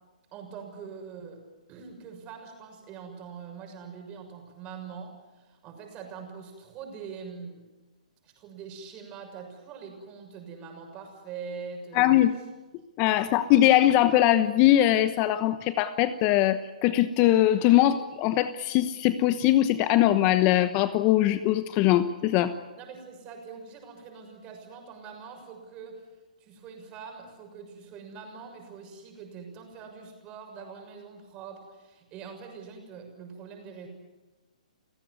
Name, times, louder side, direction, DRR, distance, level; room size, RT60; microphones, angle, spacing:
voice 1, 0.3-1.4 1.7-7.6 8.2-12.1 13.2-13.4 22.8-26.1 26.4-33.9, right 6 dB, 25° right, 4 dB, 6.7 m, -43 dB
voice 2, 11.9-12.3 13.0-22.5, left 13 dB, 30° left, 12 dB, 1.0 m, -21 dB
30.0 x 16.0 x 9.6 m, 1.2 s
hypercardioid pair, 145°, 4 cm